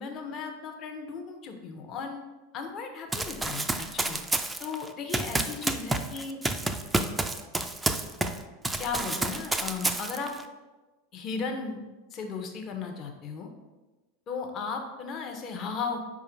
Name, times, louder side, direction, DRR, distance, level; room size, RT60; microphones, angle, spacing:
voice 1, 0.0-2.2 2.5-4.2 4.6-6.4 8.8-10.3 11.1-11.8 12.1-13.5 14.3-16.0, left 5 dB, 40° left, 4 dB, 0.7 m, -36 dB
Run, 3.1-8.4 8.6-10.4, right 2 dB, 10° right, 0.3 m, -29 dB
4.8 x 2.4 x 4.4 m, 1.2 s
figure-of-eight pair, 85°, 0 cm